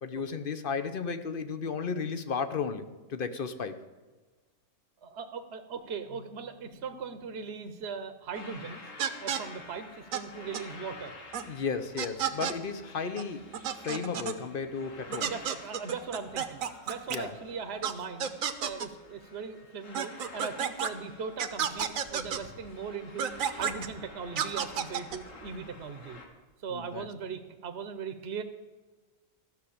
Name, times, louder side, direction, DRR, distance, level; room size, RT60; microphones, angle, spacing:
voice 1, 0.0-3.8 11.4-13.5 13.8-15.3 17.1-17.3 26.7-27.1, left 5 dB, 45° left, 9 dB, 0.9 m, -34 dB
voice 2, 5.0-8.8 9.2-11.1 15.1-18.3 18.6-26.2 26.6-28.4, right 5 dB, 55° right, 9 dB, 1.1 m, -39 dB
Keyboard (musical), 6.1-9.0, left 5 dB, 90° left, 2.1 m, -59 dB
sound 1, 8.3-26.3, left 2 dB, 70° left, 2.1 m, -50 dB
sound 2, 9.0-9.4 10.1-10.2 10.5-10.6 11.3-11.4 12.0-12.5 13.2-13.3 13.5-14.4 15.1-17.2 17.8-17.9 18.2-18.9 19.9-20.9 21.4-22.4 23.2-23.9 24.4-25.2, right 8 dB, 80° right, 1.3 m, -31 dB
14.0 x 6.6 x 8.5 m, 1.3 s
omnidirectional pair, 1.4 m